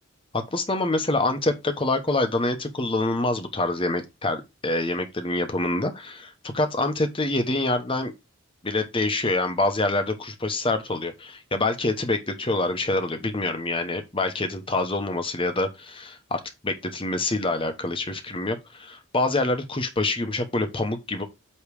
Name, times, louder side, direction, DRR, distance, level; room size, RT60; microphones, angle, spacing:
voice 1, 0.3-8.1 8.6-21.2, left 2 dB, 25° left, 1.0 m, -26 dB
8.5 x 3.2 x 4.8 m
head